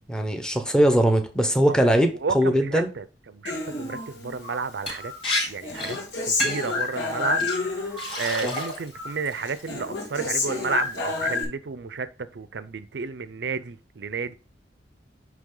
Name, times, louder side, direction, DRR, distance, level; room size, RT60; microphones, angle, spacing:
voice 1, 0.1-2.9 8.4-8.5, equal, 5° left, 0.8 m, -21 dB
voice 2, 2.2-5.1 5.5-6.0 6.3-14.3, right 5 dB, 65° right, 0.5 m, -32 dB
Human voice, 3.4-4.6 5.0-8.2 8.5-9.2 9.4-11.4, left 3 dB, 75° left, 2.1 m, -29 dB
Liquid, 4.9-5.0 5.2-5.4 5.7-6.0 6.4-6.7 7.4-7.5 8.0-8.9 9.2-9.7, left 1 dB, 30° left, 3.9 m, -29 dB
9.9 x 3.4 x 3.8 m
head